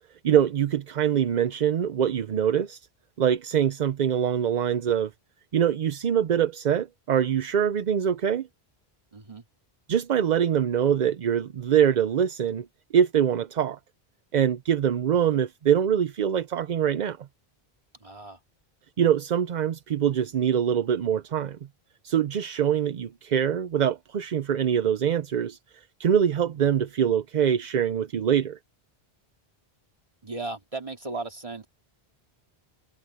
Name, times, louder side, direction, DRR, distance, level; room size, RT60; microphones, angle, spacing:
voice 1, 0.2-2.9 3.2-5.1 5.5-8.5 9.9-12.7 12.9-13.8 14.3-17.2 19.0-21.6 22.0-28.6, right 9 dB, 50° right, 0.6 m, -24 dB
voice 2, 9.1-9.4 18.0-18.4 30.2-31.7, right 3 dB, 30° right, 2.5 m, -36 dB
omnidirectional pair, 1.1 m